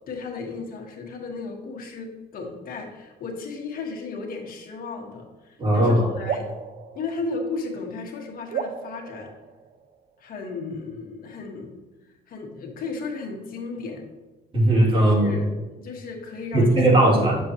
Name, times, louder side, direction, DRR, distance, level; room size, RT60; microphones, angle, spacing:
voice 1, 0.1-6.5 6.9-9.3 10.2-11.8 12.3-14.0 15.0-16.8, left 3 dB, 60° left, 2 dB, 1.7 m, -34 dB
voice 2, 5.6-6.1 14.5-15.3 16.5-17.4, right 1 dB, 30° right, -3 dB, 2.6 m, -18 dB
sound 1, 6.3-7.9 8.5-10.2, right 7 dB, 55° right, 0.8 m, -35 dB
9.6 x 7.0 x 3.0 m, 1.2 s
cardioid pair, 110°, 17 cm